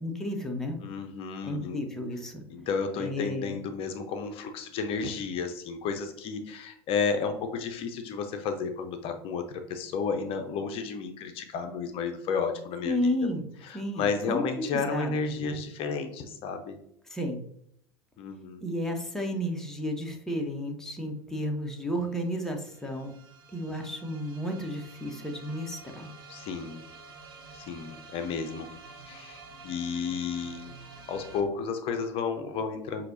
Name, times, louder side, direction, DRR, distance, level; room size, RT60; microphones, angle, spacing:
voice 1, 0.0-0.8 1.4-2.4 3.0-3.6 12.8-13.5 13.7-15.1 17.1-17.4 18.6-23.1 23.5-26.1, left 1 dB, 5° left, 2 dB, 0.9 m, -32 dB
voice 2, 0.8-1.8 2.5-13.0 14.0-16.8 18.2-18.6 26.3-26.8 27.5-28.7 29.1-30.7 31.1-33.1, left 5 dB, 45° left, 7 dB, 0.6 m, -32 dB
sound 1, 21.2-21.3 21.5-31.4, right 3 dB, 70° right, 1.0 m, -49 dB
5.9 x 2.8 x 2.6 m, 0.72 s
hypercardioid pair, 80°, 13 cm